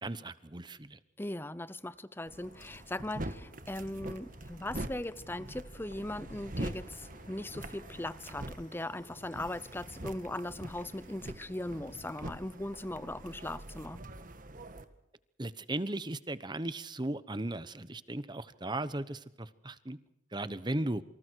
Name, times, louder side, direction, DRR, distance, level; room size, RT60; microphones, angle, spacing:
voice 1, 0.0-1.0 15.4-20.0 20.3-21.0, right 1 dB, 25° right, 1.1 m, -36 dB
voice 2, 1.2-14.0, left 1 dB, 10° left, 0.7 m, -39 dB
sound 1, 2.3-12.7, left 1 dB, 45° left, 3.1 m, -59 dB
sound 2, 2.3-14.8, right 1 dB, 50° right, 1.7 m, -44 dB
28.0 x 26.0 x 4.7 m
head